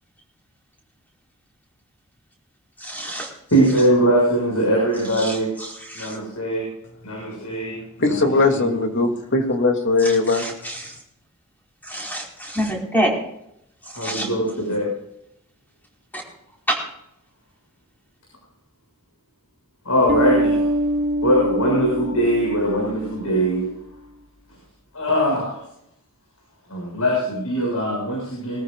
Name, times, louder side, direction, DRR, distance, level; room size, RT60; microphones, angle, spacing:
voice 1, 2.8-3.3 5.2-6.2 10.0-11.0 11.8-13.1 14.0-14.3 16.1-16.2 16.7-16.8, equal, 10° left, -1 dB, 4.8 m, -27 dB
voice 2, 3.5-5.5 5.9-6.7 7.0-7.8 8.1-8.2 8.5-9.1 14.0-14.9 19.8-20.6 21.2-23.7 24.9-25.6 26.7-28.6, equal, 85° left, -3 dB, 6.7 m, -21 dB
voice 3, 8.0-10.4, left 3 dB, 60° left, 4 dB, 2.8 m, -19 dB
Bass guitar, 20.1-23.6, right 1 dB, 50° right, 3.3 m, -24 dB
22.5 x 14.5 x 2.5 m, 0.78 s
head